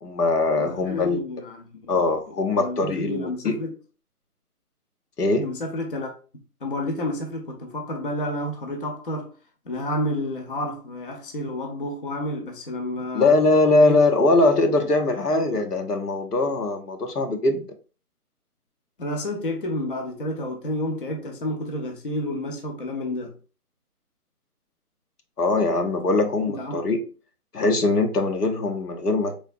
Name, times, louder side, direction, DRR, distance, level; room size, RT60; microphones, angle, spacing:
voice 1, 0.0-1.2 1.9-3.6 5.2-5.5 13.1-17.7 25.4-27.0 27.5-29.3, left 2 dB, 80° left, 0.9 m, -21 dB
voice 2, 0.6-2.0 2.3-3.7 5.4-6.1 6.6-9.3 9.7-13.3 13.8-14.0 15.3-15.4 19.0-23.3 26.5-26.8, left 1 dB, 35° left, 0.5 m, -30 dB
3.9 x 3.3 x 2.6 m
figure-of-eight pair, 150°, 46 cm